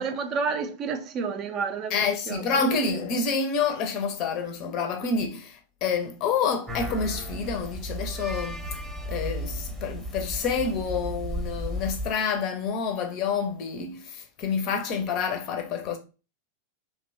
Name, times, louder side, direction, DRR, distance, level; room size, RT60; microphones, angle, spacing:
voice 1, 0.0-2.4, right 5 dB, 35° right, 0.4 m, -30 dB
voice 2, 1.9-8.8 9.1-16.0, left 5 dB, 40° left, 0.6 m, -28 dB
sound 1, 6.7-12.1, equal, 15° right, 0.8 m, -34 dB
2.7 x 2.2 x 2.6 m
figure-of-eight pair, 90°, 0 cm